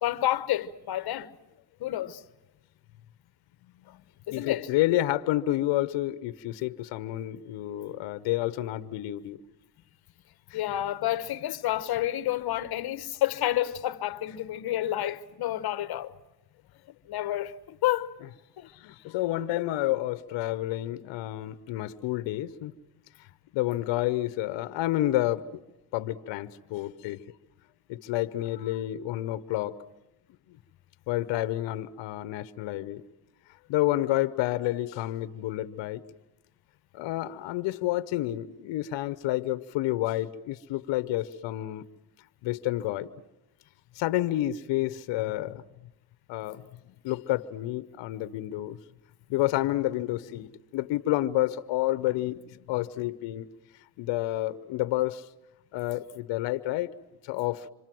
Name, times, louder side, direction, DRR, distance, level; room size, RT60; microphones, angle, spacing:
voice 1, 0.0-1.4 1.8-2.2 3.9-4.0 4.3-4.7 10.5-16.1 17.1-18.2 18.6-18.7 19.1-19.2, left 13 dB, 55° left, 1.2 m, -29 dB
voice 2, 4.3-9.4 10.5-10.6 18.8-22.7 23.5-25.5 25.9-27.2 27.9-29.8 31.1-33.0 33.7-36.1 36.9-41.8 42.4-43.1 43.9-45.6 46.3-46.6 47.0-48.8 49.3-53.5 54.0-55.2 55.7-56.9 57.2-57.7, left 15 dB, 70° left, 1.1 m, -29 dB
26.5 x 26.0 x 7.8 m
supercardioid pair, 95°, 46 cm